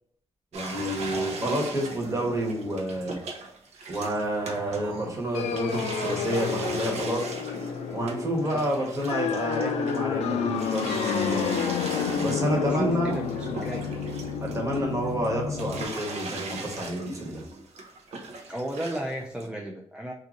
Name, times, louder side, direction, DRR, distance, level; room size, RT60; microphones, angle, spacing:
voice 1, 0.5-3.2 3.9-7.4 7.9-11.5 12.2-13.2 14.4-17.4, right 1 dB, 30° right, -1 dB, 1.1 m, -29 dB
sound 1, 0.5-5.2 5.5-10.1 10.5-15.3 15.5-19.1 19.4-19.5, right 3 dB, 80° right, 0.6 m, -39 dB
sound 2, 3.7-7.1, right 3 dB, 60° right, 1.3 m, -48 dB
sound 3, 5.3-15.8, left 6 dB, 85° left, 0.4 m, -30 dB
voice 2, 12.5-13.8 14.3-14.4 18.5-20.1, right 1 dB, 10° right, 0 dB, 0.3 m, -33 dB
2.7 x 2.5 x 3.6 m, 0.74 s
cardioid pair, 95°, 11 cm